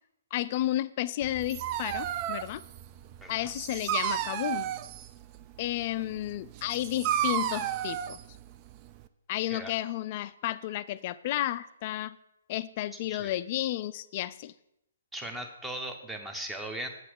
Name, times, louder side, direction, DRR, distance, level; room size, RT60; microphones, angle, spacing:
voice 1, 0.3-2.6 3.3-4.7 5.6-8.2 9.3-12.2 12.5-14.5, left 14 dB, 40° left, 15 dB, 0.3 m, -32 dB
Dog, 1.2-9.1, right 10 dB, 30° right, 0.4 m, -33 dB
voice 2, 3.2-3.5 9.5-9.7 13.1-13.3 15.1-16.9, right 1 dB, 5° right, 5 dB, 0.9 m, -38 dB
7.7 x 4.2 x 6.5 m, 0.80 s
hypercardioid pair, 140°, 0 cm